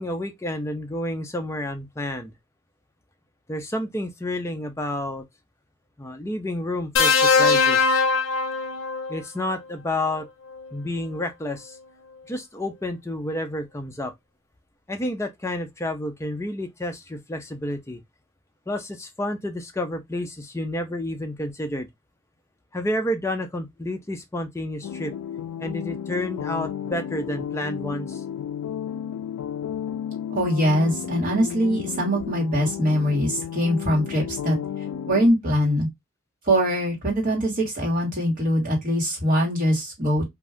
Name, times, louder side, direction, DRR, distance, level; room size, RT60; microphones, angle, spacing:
voice 1, 0.0-2.3 3.5-5.2 6.0-8.0 9.1-10.3 10.7-11.8 12.3-14.1 14.9-18.0 18.7-21.9 22.7-25.1 25.6-28.2, left 1 dB, 10° left, 0.4 m, -30 dB
sound 1, 7.0-9.2 10.5-10.7, left 4 dB, 60° left, 0.7 m, -20 dB
sound 2, 24.8-35.3, left 9 dB, 85° left, 0.3 m, -33 dB
voice 2, 30.3-34.6 35.1-35.9 36.5-40.2, equal, 40° right, 1.5 m, -22 dB
2.5 x 2.3 x 3.4 m
head